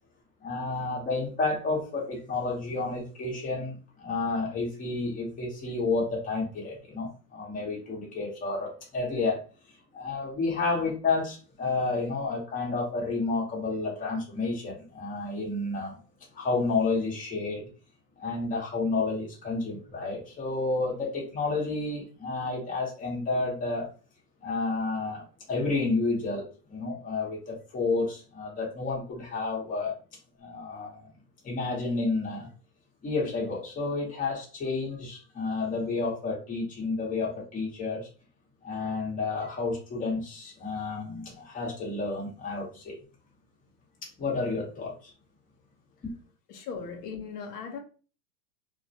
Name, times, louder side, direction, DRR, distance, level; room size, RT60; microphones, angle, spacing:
voice 1, 0.4-9.4 9.9-15.9 16.3-17.7 18.2-23.9 24.4-30.0 30.4-31.1 31.4-32.5 33.0-38.1 38.6-43.0 44.2-45.1, left 3 dB, 15° left, 0.9 m, -30 dB
voice 2, 46.5-47.8, left 5 dB, 70° left, 0.8 m, -38 dB
2.2 x 2.1 x 2.7 m
hypercardioid pair, 125°, 49 cm